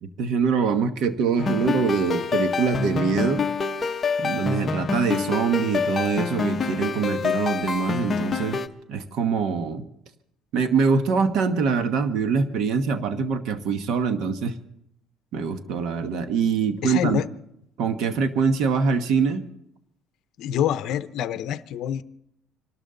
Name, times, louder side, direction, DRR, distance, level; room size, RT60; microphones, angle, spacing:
voice 1, 0.0-3.4 4.2-8.6 8.9-9.8 10.5-14.6 15.3-17.2 17.8-19.4, right 5 dB, 60° right, 1.2 m, -24 dB
sound 1, 1.4-8.7, left 4 dB, 20° left, 0.8 m, -26 dB
voice 2, 16.8-17.3 20.4-22.0, left 10 dB, 55° left, 0.7 m, -26 dB
27.0 x 12.5 x 3.9 m
cardioid pair, 150°, 0 cm